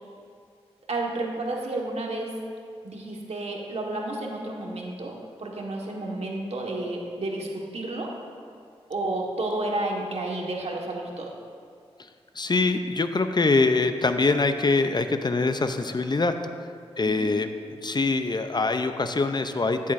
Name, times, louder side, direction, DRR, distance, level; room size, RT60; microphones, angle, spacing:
voice 1, 0.9-2.3 2.8-5.1 5.4-8.1 8.9-11.3 17.0-17.3, right 2 dB, 65° right, -1 dB, 1.5 m, -31 dB
voice 2, 12.3-16.3 17.0-17.5 17.8-19.9, left 3 dB, 40° left, 8 dB, 0.6 m, -24 dB
13.0 x 7.3 x 2.6 m, 2.2 s
cardioid pair, 40°, 11 cm